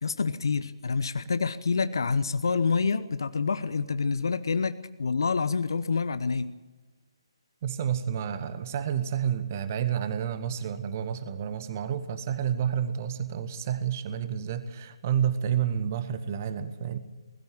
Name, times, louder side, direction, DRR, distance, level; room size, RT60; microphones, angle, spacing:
voice 1, 0.0-6.5, left 5 dB, 50° left, 13 dB, 0.8 m, -27 dB
voice 2, 7.6-17.0, right 9 dB, 30° right, 12 dB, 1.2 m, -30 dB
21.0 x 14.0 x 9.1 m, 1.3 s
figure-of-eight pair, 140°, 3 cm